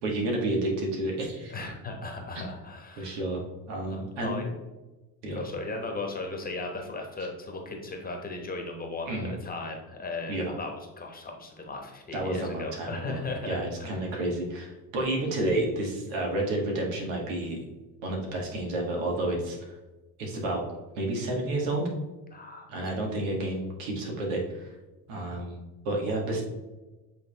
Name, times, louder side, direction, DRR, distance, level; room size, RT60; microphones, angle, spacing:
voice 1, 0.0-1.6 2.4-2.5 3.0-4.4 5.2-5.4 9.1-9.3 10.3-10.5 12.1-17.6 18.0-19.6 20.2-20.6 21.0-21.9 22.7-24.7 25.1-26.4, right 1 dB, 85° right, 0 dB, 1.9 m, -30 dB
voice 2, 1.5-3.2 3.8-4.5 5.3-14.1 22.3-22.7, left 3 dB, 20° left, 3 dB, 1.1 m, -37 dB
7.8 x 3.5 x 3.4 m, 1.1 s
cardioid pair, 115°, 42 cm